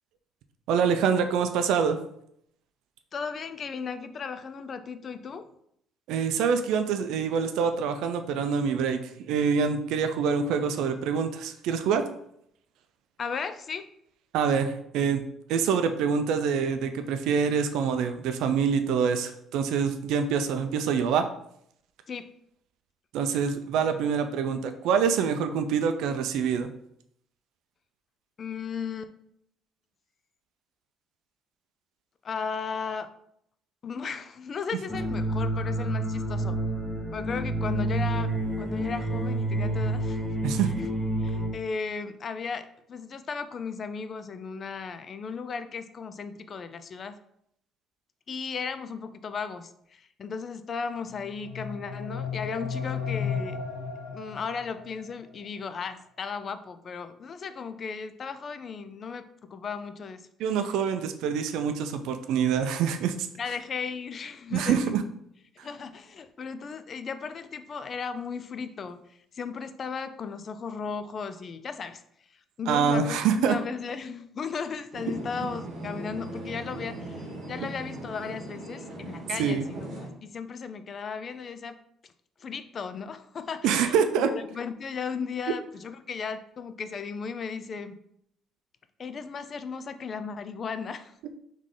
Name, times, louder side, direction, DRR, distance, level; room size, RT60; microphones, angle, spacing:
voice 1, 0.7-2.0 6.1-12.0 14.3-21.3 23.1-26.7 40.4-40.7 60.4-63.3 64.5-65.0 65.6-65.7 72.7-73.6 79.4-79.7 83.6-84.3, right 6 dB, 80° right, 8 dB, 0.4 m, -25 dB
voice 2, 3.1-5.5 13.2-13.9 22.1-22.3 28.4-29.1 32.2-33.1 33.8-36.6 37.1-40.2 41.2-47.2 48.3-53.6 54.1-60.3 63.4-65.1 65.5-72.0 72.3-81.8 82.0-82.1 82.4-88.0 89.0-91.1, left 5 dB, 35° left, 11 dB, 0.3 m, -36 dB
sound 1, 34.9-41.5, right 1 dB, ahead, 0.6 m, -29 dB
sound 2, 51.1-55.1, left 6 dB, 90° left, 0.7 m, -34 dB
sound 3, 74.9-80.1, right 1 dB, 50° right, 1.3 m, -39 dB
3.7 x 3.1 x 3.7 m, 0.72 s
cardioid pair, 135°, 0 cm